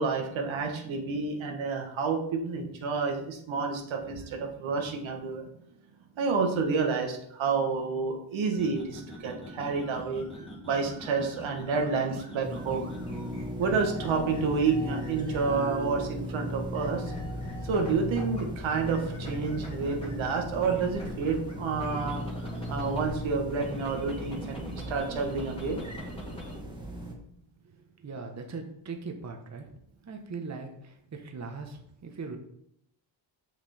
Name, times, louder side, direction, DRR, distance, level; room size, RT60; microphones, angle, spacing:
voice 1, 0.0-5.5 6.2-10.2 10.6-12.9 13.6-17.1 17.6-22.2 22.7-25.8, right 4 dB, 70° right, 3 dB, 1.5 m, -29 dB
sound 1, 8.5-15.7 16.7-18.4 18.7-23.1 23.5-26.6, equal, 10° left, 2.2 m, -43 dB
sound 2, 12.4-27.1, equal, 10° right, 1.6 m, -38 dB
voice 2, 28.0-29.7 30.1-32.4, right 4 dB, 35° right, 4 dB, 1.2 m, -40 dB
6.1 x 6.0 x 4.3 m, 0.73 s
cardioid pair, 80°, 48 cm